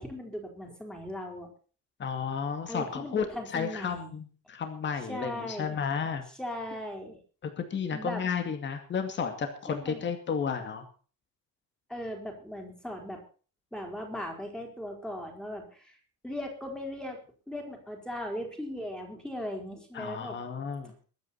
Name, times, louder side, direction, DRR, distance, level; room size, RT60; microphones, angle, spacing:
voice 1, 0.0-1.5 2.7-4.1 5.1-5.8 6.4-7.2 7.8-8.2 9.7-10.0 11.9-13.2 13.7-16.0 16.2-17.2 17.5-20.4, left 1 dB, ahead, 2 dB, 4.2 m, -38 dB
voice 2, 2.0-3.3 3.5-6.2 7.4-10.9 19.9-20.9, left 6 dB, 30° left, 7 dB, 2.4 m, -32 dB
23.0 x 9.5 x 4.3 m, 0.39 s
cardioid pair, 165°, 35 cm